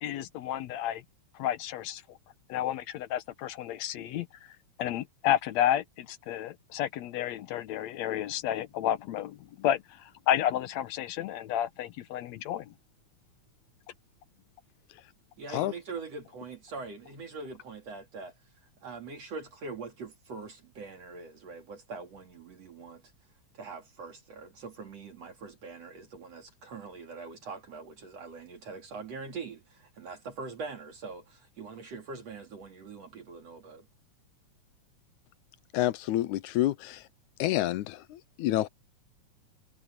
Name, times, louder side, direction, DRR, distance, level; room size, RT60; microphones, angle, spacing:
voice 1, 0.0-1.0 1.4-2.2 2.5-4.3 4.8-12.7, left 11 dB, 70° left, 1.9 m, -31 dB
voice 2, 15.4-18.4 18.8-23.0 23.5-33.9, right 4 dB, 60° right, 3.4 m, -43 dB
voice 3, 35.7-37.1 37.4-38.7, left 15 dB, 90° left, 2.1 m, -28 dB
omnidirectional pair, 3.4 m